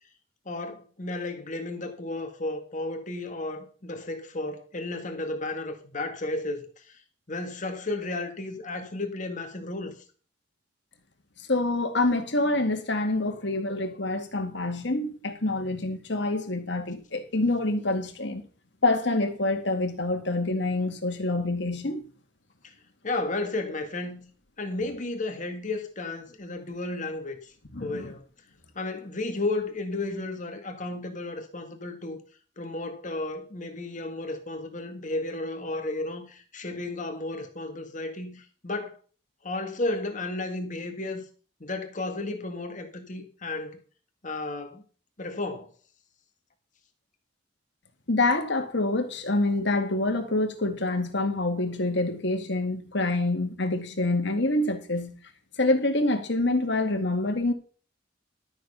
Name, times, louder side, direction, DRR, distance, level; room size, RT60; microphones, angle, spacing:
voice 1, 0.5-6.6 7.3-9.9 22.6-22.7 23.0-24.3 24.6-27.4 27.8-28.2 28.8-32.2 32.6-39.0 39.4-41.2 41.6-43.8 44.2-44.8 45.2-45.7, left 2 dB, 40° left, 2.0 m, -33 dB
voice 2, 11.5-18.4 18.8-22.1 27.7-28.1 48.1-55.1 55.6-57.5, left 2 dB, 60° left, 2.1 m, -26 dB
13.0 x 6.8 x 5.5 m
head